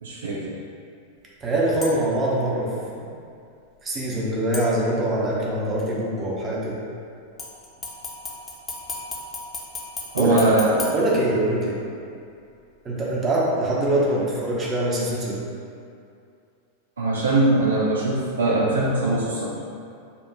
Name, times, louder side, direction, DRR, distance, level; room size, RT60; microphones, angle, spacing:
voice 1, 0.0-0.4 10.1-10.9 17.0-19.5, right 2 dB, 70° right, -4 dB, 0.5 m, -21 dB
voice 2, 1.4-3.1 3.8-6.8 10.2-10.4 10.9-11.8 12.8-15.4, right 1 dB, 25° right, -5 dB, 1.0 m, -23 dB
sound 1, 1.8-2.2 4.5-5.2 7.4-11.8 12.2-12.3, left 3 dB, 20° left, 0.9 m, -36 dB
6.9 x 2.5 x 2.9 m, 2.4 s
figure-of-eight pair, 90°, 0 cm